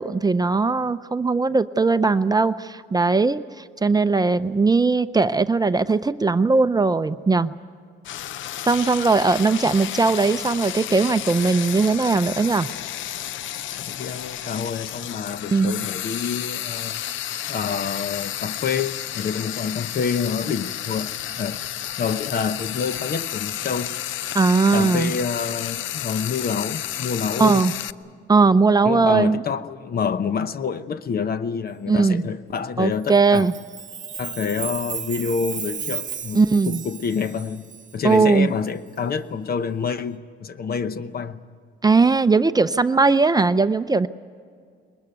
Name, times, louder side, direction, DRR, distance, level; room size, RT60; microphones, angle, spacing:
voice 1, 0.0-3.4 3.8-7.5 8.7-12.7 15.5-15.9 24.3-25.1 27.4-27.7 28.3-29.4 31.9-32.3 32.8-33.5 36.3-36.8 38.0-38.5 41.8-44.1, right 4 dB, 20° right, 0.5 m, -19 dB
Frying (food), 8.0-27.9, left 12 dB, 75° left, 0.6 m, -31 dB
voice 2, 13.9-17.0 17.5-21.6 22.0-24.0 24.7-27.6 28.8-33.5 34.2-37.7 37.9-41.4, left 6 dB, 50° left, 0.9 m, -27 dB
Chime, 33.0-38.2, right 7 dB, 40° right, 0.9 m, -34 dB
21.5 x 20.5 x 9.4 m
cardioid pair, 90°, 20 cm